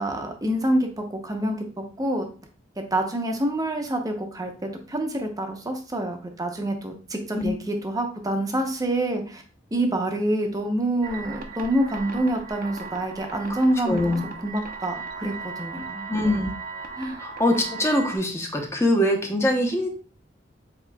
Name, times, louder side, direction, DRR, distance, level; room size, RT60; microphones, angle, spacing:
voice 1, 0.0-1.6 2.0-2.3 2.8-4.5 4.9-9.4 9.7-16.1 17.0-17.3, right 1 dB, 20° right, 4 dB, 0.8 m, -27 dB
sound 1, 11.0-18.2, right 4 dB, 50° right, 0.7 m, -37 dB
voice 2, 13.9-14.2 16.1-16.5 17.2-19.9, left 1 dB, 15° left, 2 dB, 0.9 m, -23 dB
7.3 x 3.0 x 2.3 m, 0.38 s
head